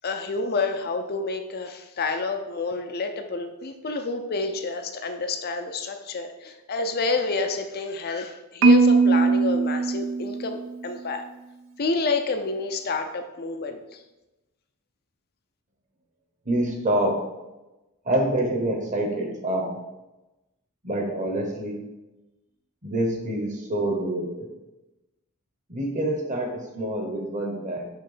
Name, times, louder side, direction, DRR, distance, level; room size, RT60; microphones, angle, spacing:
voice 1, 0.0-10.6 10.8-11.3 11.8-14.0, left 3 dB, 45° left, 6 dB, 0.5 m, -29 dB
Marimba xylophone, 8.6-10.8, right 3 dB, 65° right, 0.4 m, -20 dB
voice 2, 16.4-17.3 18.0-19.8 20.8-21.8 22.8-24.5 25.7-27.9, right 1 dB, 35° right, 2 dB, 1.0 m, -26 dB
6.6 x 3.1 x 5.0 m, 1.0 s
head